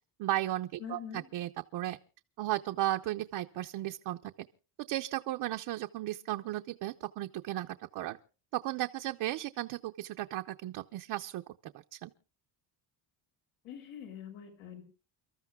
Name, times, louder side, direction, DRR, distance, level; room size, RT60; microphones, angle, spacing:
voice 1, 0.2-1.0 1.3-2.0 2.4-4.2 4.9-8.2 8.6-11.4 11.9-12.1, right 15 dB, 55° right, 0.8 m, -35 dB
voice 2, 0.8-1.2 13.6-14.8, left 8 dB, 90° left, 6.8 m, -44 dB
29.5 x 13.5 x 2.3 m
cardioid pair, 155°, 48 cm